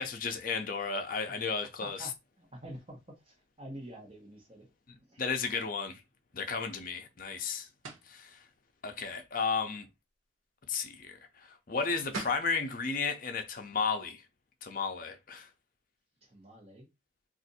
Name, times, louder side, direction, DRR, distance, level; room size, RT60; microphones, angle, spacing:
voice 1, 0.0-2.1 5.2-6.0 6.3-7.7 8.1-8.4 8.8-9.9 10.7-14.2 14.6-15.5, left 5 dB, 45° left, 0.5 m, -33 dB
voice 2, 1.8-4.7 5.1-5.2 16.2-16.9, right 1 dB, 30° right, 1.1 m, -47 dB
sound 1, 7.8-8.1 11.8-11.9 12.1-12.5, right 3 dB, 85° right, 0.8 m, -39 dB
2.6 x 2.4 x 4.0 m
head